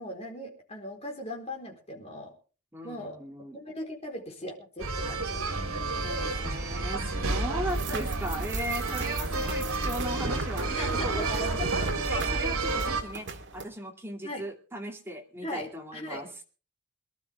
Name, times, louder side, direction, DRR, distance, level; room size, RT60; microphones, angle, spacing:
voice 1, 0.0-2.3 2.8-3.2 3.5-5.5 6.2-6.3 8.3-8.4 10.7-11.7 12.0-12.1 14.2-14.4 15.4-15.7 15.9-16.2, left 1 dB, 30° left, 1 dB, 4.2 m, -39 dB
voice 2, 2.7-3.6 6.0-11.6 12.1-13.3 13.5-16.4, right 1 dB, 10° right, 2 dB, 2.5 m, -37 dB
sound 1, 4.8-13.0, right 3 dB, 75° right, 2.8 m, -30 dB
sound 2, 7.7-13.7, right 3 dB, 55° right, 1.9 m, -39 dB
23.5 x 12.0 x 3.5 m, 0.36 s
head